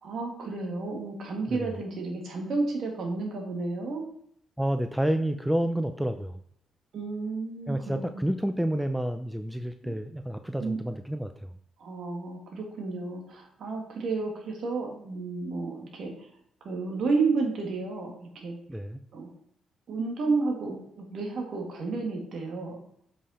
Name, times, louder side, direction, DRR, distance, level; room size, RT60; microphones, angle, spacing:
voice 1, 0.0-4.0 6.9-8.3 9.8-9.9 10.6-10.8 11.8-16.3 16.6-18.6 19.1-19.3 19.9-22.8, right 3 dB, 60° right, 1 dB, 2.0 m, -31 dB
voice 2, 4.6-6.4 7.7-11.5 18.7-19.0, right 1 dB, 5° right, 8 dB, 0.4 m, -29 dB
7.4 x 5.5 x 4.2 m, 0.66 s
cardioid pair, 90°, 0 cm